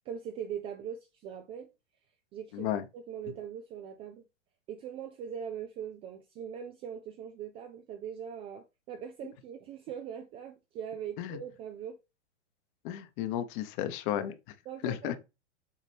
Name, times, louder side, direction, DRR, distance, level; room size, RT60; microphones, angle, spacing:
voice 1, 0.1-1.7 2.3-4.2 4.7-12.0 14.7-15.2, right 8 dB, 15° right, 0.3 m, -41 dB
voice 2, 2.5-2.8 11.2-11.4 12.8-14.3 14.8-15.2, left 11 dB, 45° left, 1.0 m, -33 dB
7.4 x 4.0 x 3.4 m
hypercardioid pair, 125°, 36 cm